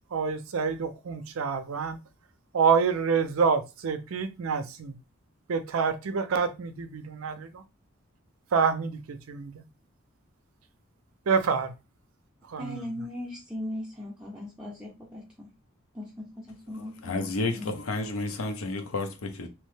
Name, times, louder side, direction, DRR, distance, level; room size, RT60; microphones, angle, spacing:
voice 1, 0.1-2.0 2.5-4.9 5.5-7.6 8.5-9.6 11.3-11.7 12.5-12.9, right 5 dB, 80° right, 0.5 m, -27 dB
voice 2, 12.6-15.5 15.9-17.7, left 1 dB, 5° right, 0.6 m, -39 dB
voice 3, 17.0-19.5, left 3 dB, 90° left, 0.7 m, -31 dB
2.9 x 2.1 x 3.1 m
head